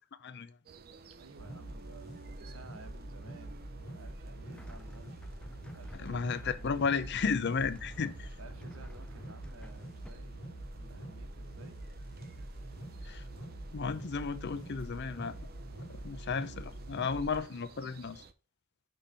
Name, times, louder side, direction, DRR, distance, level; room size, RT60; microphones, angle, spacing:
voice 1, 0.2-0.6 5.9-8.3 13.0-13.2 13.7-15.4 15.9-18.2, left 5 dB, 55° left, 0.5 m, -34 dB
sound 1, 0.7-18.3, right 4 dB, 45° right, 0.5 m, -55 dB
voice 2, 1.1-3.6 3.9-5.2 5.7-6.2 6.6-6.7 8.4-10.4 10.7-11.8, right 2 dB, 80° right, 1.1 m, -55 dB
sound 2, 1.4-17.4, right 1 dB, 85° left, 1.7 m, -45 dB
sound 3, 4.5-10.1, left 1 dB, 5° left, 0.4 m, -55 dB
6.3 x 3.3 x 5.5 m
head